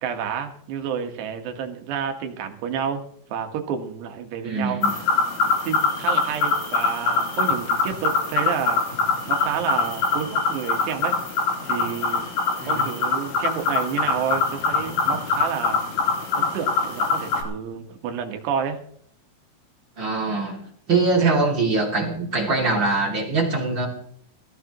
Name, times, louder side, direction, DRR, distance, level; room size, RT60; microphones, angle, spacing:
voice 1, 0.0-3.0 3.3-4.8 5.6-8.8 9.3-11.2 11.6-12.3 12.7-15.8 16.3-18.8 21.2-21.4, right 7 dB, 70° right, 5 dB, 3.3 m, -29 dB
voice 2, 4.4-4.9 12.6-12.8 20.0-20.6 20.9-23.9, right 3 dB, 30° right, -2 dB, 2.4 m, -22 dB
sound 1, 4.8-17.4, left 4 dB, 65° left, 5.1 m, -24 dB
21.5 x 15.0 x 3.1 m, 0.64 s
omnidirectional pair, 5.7 m